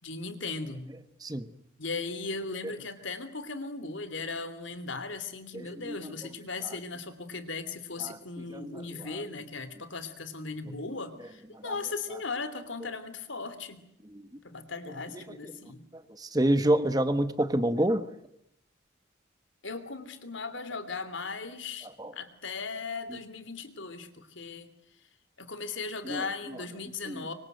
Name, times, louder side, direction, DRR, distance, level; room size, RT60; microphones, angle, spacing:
voice 1, 0.0-0.9 1.8-13.8 14.4-15.8 19.6-24.7 25.4-27.3, left 4 dB, 75° left, 12 dB, 3.0 m, -37 dB
voice 2, 5.5-6.0 8.0-8.1 8.5-8.6 11.6-11.7 14.1-14.2 16.2-18.0 22.0-22.1 26.1-26.2 27.1-27.2, right 1 dB, 20° right, 11 dB, 1.2 m, -27 dB
25.0 x 24.5 x 7.9 m, 0.77 s
head